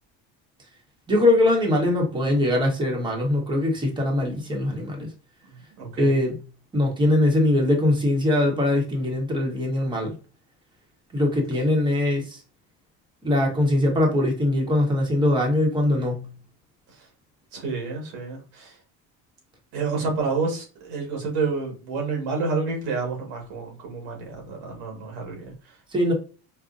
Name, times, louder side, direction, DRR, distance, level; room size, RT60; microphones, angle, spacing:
voice 1, 1.1-5.1 6.0-6.4 6.7-10.1 11.1-12.4 13.2-16.3 25.9-26.1, left 1 dB, 15° right, 1.0 m, -22 dB
voice 2, 5.4-6.2 16.9-17.1 17.5-18.8 19.7-25.7, right 4 dB, 80° right, 1.6 m, -29 dB
5.0 x 2.1 x 2.5 m
cardioid pair, 135°, 35 cm